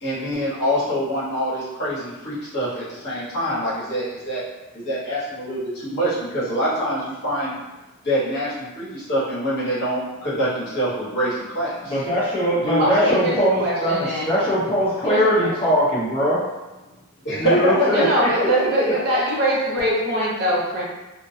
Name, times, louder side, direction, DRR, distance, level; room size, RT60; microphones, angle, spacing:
voice 1, 0.0-4.4 4.7-7.5 8.0-11.9 12.6-13.3 14.0-14.1 17.2-19.4, equal, 55° left, -10 dB, 1.1 m, -25 dB
voice 2, 11.9-14.0 14.3-16.4 17.4-18.3 18.8-18.9, equal, 25° left, -9 dB, 0.8 m, -21 dB
voice 3, 12.8-14.3 15.0-15.5 17.9-20.8, right 1 dB, 50° right, -5 dB, 0.7 m, -22 dB
2.2 x 2.2 x 2.6 m, 1.1 s
head